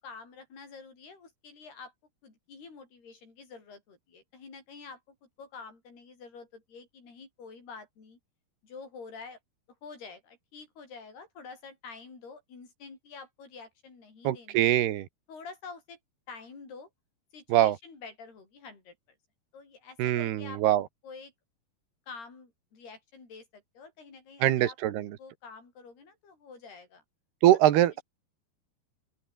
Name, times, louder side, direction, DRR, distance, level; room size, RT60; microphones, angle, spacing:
voice 1, 0.0-1.9 2.2-8.2 8.6-9.4 9.8-14.7 15.3-16.0 16.3-16.9 17.3-19.0 19.5-20.6 21.0-21.3 22.1-24.8 25.2-27.0 27.7-27.8, left 4 dB, 85° left, 9.2 m, -48 dB
voice 2, 14.3-15.1 17.5-17.8 20.0-20.8 24.4-25.1 27.4-28.0, right 13 dB, 90° right, 3.6 m, -23 dB
open air
omnidirectional pair, 4.5 m